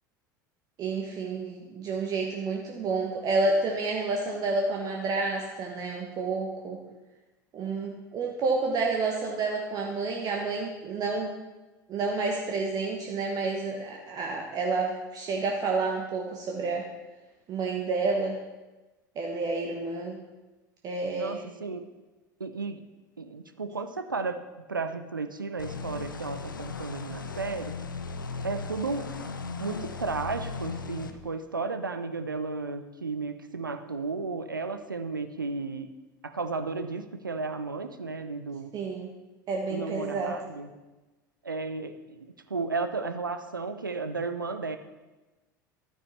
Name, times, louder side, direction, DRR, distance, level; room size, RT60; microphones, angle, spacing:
voice 1, 0.8-6.8 7.5-11.3 11.9-16.9 17.5-18.4 19.2-20.2 20.8-21.4 38.7-39.1 39.5-40.3, right 3 dB, 35° right, 0 dB, 1.1 m, -29 dB
voice 2, 21.2-21.9 22.4-22.8 23.2-24.4 24.7-27.7 28.4-35.9 36.2-38.7 39.7-40.7 41.4-44.8, right 4 dB, 85° right, 9 dB, 0.5 m, -34 dB
sound 1, 25.6-31.1, left 4 dB, 80° left, 0.6 m, -37 dB
12.0 x 9.5 x 3.2 m, 1.1 s
figure-of-eight pair, 75°, 11 cm